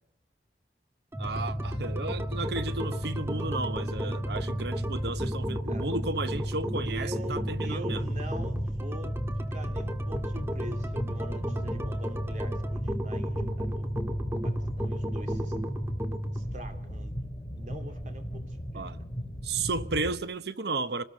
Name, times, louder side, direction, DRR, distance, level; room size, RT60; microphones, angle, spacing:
sound 1, 1.1-16.5, equal, 15° right, 1.8 m, -33 dB
sound 2, 1.2-20.2, equal, 25° left, 3.8 m, -38 dB
voice 1, 1.2-8.0 18.7-19.0 19.4-21.0, right 3 dB, 70° right, 0.9 m, -33 dB
voice 2, 6.8-9.1 9.5-14.1 14.4-15.5 16.3-17.1 17.6-18.8, right 1 dB, 45° right, 3.1 m, -44 dB
26.5 x 19.5 x 5.5 m
head